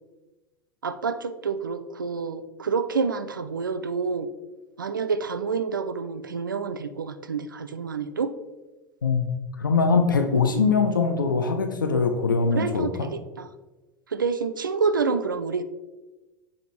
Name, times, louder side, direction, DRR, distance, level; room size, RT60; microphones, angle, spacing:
voice 1, 0.8-4.3 4.8-8.3 10.3-10.6 12.5-13.5 14.1-15.6, right 5 dB, 90° right, 11 dB, 0.4 m, -28 dB
voice 2, 9.0-13.1, left 4 dB, 85° left, 6 dB, 0.5 m, -22 dB
6.8 x 4.8 x 3.0 m, 1.1 s
figure-of-eight pair, 80°, 10 cm